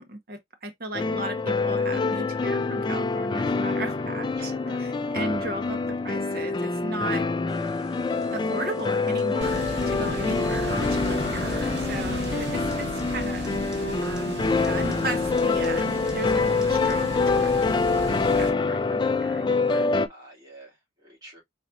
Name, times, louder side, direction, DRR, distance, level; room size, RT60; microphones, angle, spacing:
voice 1, 0.0-4.5 4.8-5.8 6.0-7.2 8.3-13.5 13.8-18.1 18.4-19.9, right 1 dB, 55° right, 1.1 m, -36 dB
sound 1, 0.9-20.1, left 4 dB, 25° left, 0.3 m, -26 dB
voice 2, 4.3-5.1 10.1-10.3 20.1-21.4, right 2 dB, 20° right, 2.9 m, -48 dB
sound 2, 7.5-12.3 12.7-12.8 13.0-13.1 13.4-13.5 13.7-13.8 14.2-14.3 14.6-14.9 15.4-15.7 16.1-16.2 16.6-16.7 16.9-17.0, left 6 dB, 5° right, 0.9 m, -38 dB
sound 3, 9.4-18.5, right 1 dB, 80° right, 1.8 m, -34 dB
4.1 x 4.0 x 2.6 m
head